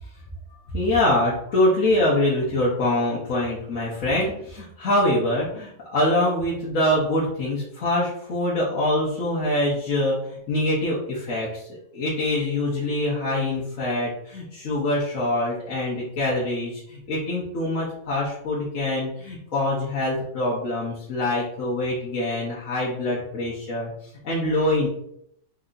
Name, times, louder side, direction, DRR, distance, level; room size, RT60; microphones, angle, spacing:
voice 1, 0.7-23.9 24.2-24.9, left 1 dB, 60° left, -7 dB, 1.4 m, -24 dB
4.5 x 2.8 x 3.8 m, 0.72 s
omnidirectional pair, 1.6 m